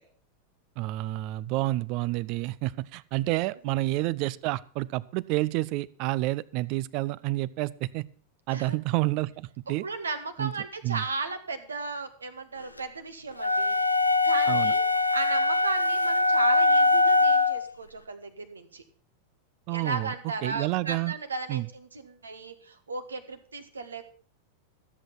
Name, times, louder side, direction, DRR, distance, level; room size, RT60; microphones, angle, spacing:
voice 1, 0.8-8.1 8.5-9.9 10.4-10.5 10.8-11.0 14.5-14.7 19.7-20.1 20.4-21.1 21.5-21.7, right 18 dB, 45° right, 21 dB, 0.5 m, -29 dB
voice 2, 9.7-13.7 14.2-14.8 15.1-18.8 19.7-24.0, right 4 dB, 75° right, 9 dB, 1.3 m, -35 dB
sound 1, 13.4-17.7, left 2 dB, 85° left, 0.6 m, -22 dB
13.5 x 7.9 x 6.0 m, 0.44 s
figure-of-eight pair, 90°, 0 cm